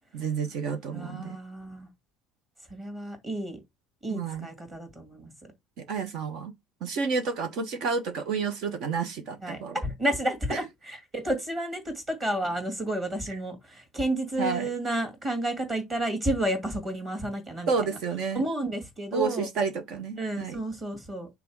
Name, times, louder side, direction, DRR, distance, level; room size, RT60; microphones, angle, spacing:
voice 1, 0.1-1.4 4.1-4.5 5.8-6.5 6.8-9.8 10.5-10.6 14.4-14.7 17.7-18.4 19.1-20.6, right 5 dB, 45° right, 1.1 m, -30 dB
voice 2, 0.9-1.9 2.7-3.6 4.0-5.3 9.4-17.9 18.3-19.5 20.2-21.3, right 1 dB, 15° right, 2.1 m, -31 dB
6.0 x 3.5 x 4.7 m
cardioid pair, 170°, 0 cm